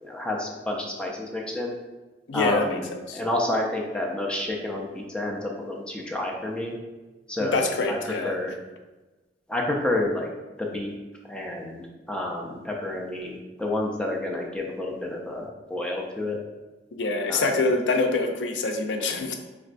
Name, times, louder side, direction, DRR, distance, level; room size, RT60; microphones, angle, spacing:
voice 1, 0.0-1.7 2.3-2.9 3.1-6.7 7.3-8.5 9.5-10.3 10.6-10.9 11.3-16.4 17.3-17.5, left 1 dB, 5° left, -1 dB, 0.4 m, -29 dB
voice 2, 2.3-3.2 7.4-8.3 16.9-19.3, left 3 dB, 85° left, 4 dB, 0.4 m, -25 dB
4.0 x 2.2 x 2.5 m, 1.2 s
head